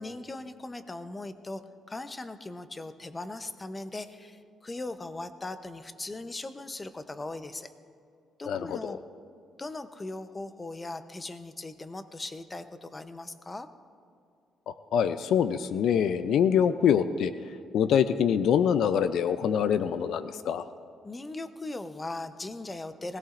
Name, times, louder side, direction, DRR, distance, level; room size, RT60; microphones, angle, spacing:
voice 1, 0.0-1.6 1.9-7.7 8.4-9.0 9.6-13.7 21.0-23.2, left 2 dB, 25° left, 10 dB, 0.8 m, -39 dB
voice 2, 8.5-9.0 14.7-17.3 17.7-20.7, left 8 dB, 75° left, 12 dB, 0.4 m, -25 dB
20.0 x 17.0 x 2.5 m, 2.3 s
cardioid pair, 90°, 0 cm